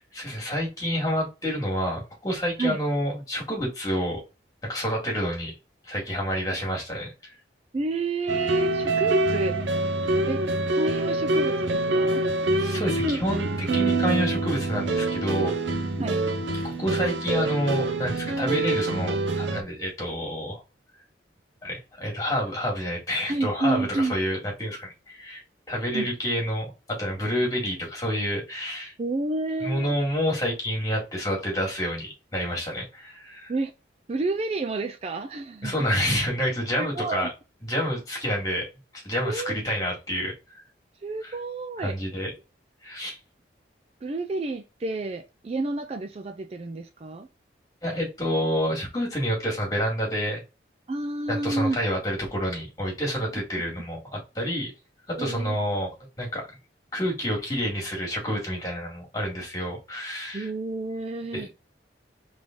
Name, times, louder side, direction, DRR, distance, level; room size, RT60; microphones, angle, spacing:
voice 1, 0.0-4.2 4.6-5.5 5.8-7.3 12.6-15.5 16.6-20.6 21.6-25.4 25.7-28.9 29.6-33.5 35.6-37.3 37.6-38.7 38.9-40.6 41.2-41.3 41.8-42.3 42.8-43.2 47.8-50.4 51.3-54.7 55.1-55.9 56.2-56.5 56.9-60.5 61.3-61.5, equal, 20° left, 2.0 m, -28 dB
voice 2, 7.7-9.6 10.3-10.4 10.7-12.2 16.0-16.2 23.3-24.2 25.9-26.1 29.0-29.9 33.5-33.7 34.1-35.9 36.8-37.3 39.2-39.6 41.0-42.0 44.0-47.3 50.9-51.8 55.2-55.6 60.3-61.5, right 3 dB, 35° right, 0.3 m, -30 dB
sound 1, 8.3-19.6, right 2 dB, 80° right, 0.8 m, -25 dB
3.7 x 3.4 x 3.8 m
head